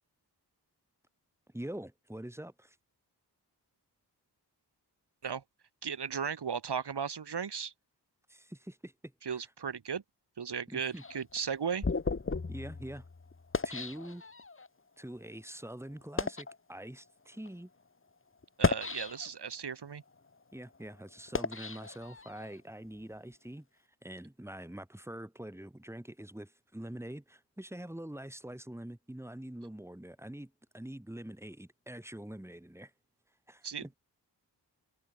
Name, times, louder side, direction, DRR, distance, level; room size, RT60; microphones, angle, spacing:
voice 1, 1.5-2.8 8.3-8.9 9.2-9.5 10.7-11.0 12.5-13.1 13.6-14.2 15.0-17.7 20.5-23.7 24.0-32.9 33.5-34.0, right 1 dB, 5° right, 6.3 m, -45 dB
voice 2, 5.8-7.7 9.2-10.0 10.4-11.9 18.6-20.0 33.6-33.8, right 6 dB, 70° right, 3.7 m, -36 dB
sound 1, 10.9-14.7 15.3-15.5 16.0-16.6 17.3-17.5 18.4-19.5 20.0-22.6, left 4 dB, 30° left, 2.3 m, -35 dB
wide cardioid pair, 160°, 41 cm